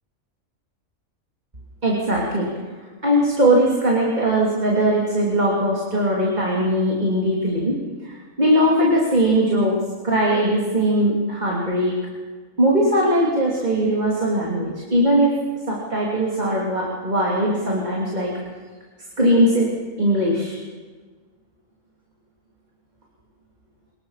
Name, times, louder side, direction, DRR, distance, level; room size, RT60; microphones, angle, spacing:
voice 1, 1.8-2.5 3.0-7.8 8.0-9.7 10.0-12.0 12.6-15.3 15.7-18.3 19.2-19.7 20.0-20.6, right 1 dB, 30° right, -4 dB, 3.1 m, -20 dB
23.5 x 21.0 x 5.8 m, 1.4 s
omnidirectional pair, 1.4 m